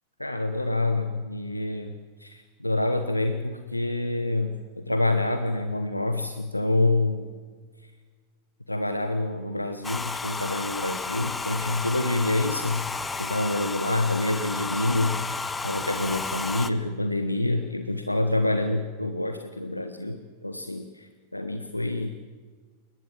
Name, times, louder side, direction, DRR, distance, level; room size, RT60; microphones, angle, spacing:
voice 1, 0.2-7.3 8.7-12.8 13.2-22.1, left 2 dB, 85° left, 8 dB, 1.1 m, -27 dB
Domestic sounds home sounds, 9.8-16.7, left 4 dB, 10° left, 1.0 m, -32 dB
21.5 x 20.0 x 7.3 m, 1.5 s
figure-of-eight pair, 90°, 0 cm